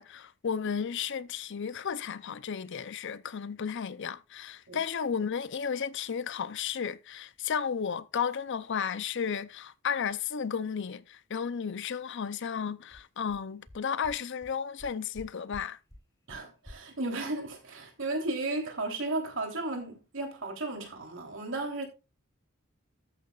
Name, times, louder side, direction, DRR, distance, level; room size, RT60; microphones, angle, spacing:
voice 1, 0.0-15.8, left 7 dB, 60° left, 0.6 m, -33 dB
sound 1, 12.5-12.6 12.9-13.0 13.3-13.4 13.7-13.8 14.0-14.1 14.4-14.5 14.8-15.2 15.5-15.6 15.9-16.0 16.3-16.4 16.6-16.7, left 1 dB, 20° left, 2.6 m, -48 dB
voice 2, 16.3-21.9, right 2 dB, 65° right, 3.2 m, -34 dB
13.0 x 9.2 x 2.4 m
head